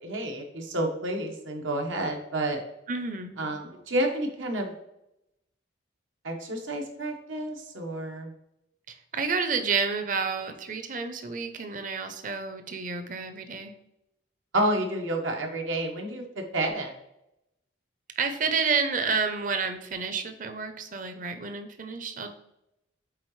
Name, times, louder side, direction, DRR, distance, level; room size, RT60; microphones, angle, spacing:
voice 1, 0.0-2.6 3.4-4.7 6.2-8.3 14.5-16.9, right 1 dB, 85° right, 2 dB, 1.3 m, -30 dB
voice 2, 2.9-3.5 9.1-13.7 18.2-22.3, right 5 dB, 45° right, 7 dB, 0.7 m, -30 dB
8.6 x 3.8 x 3.2 m, 0.84 s
head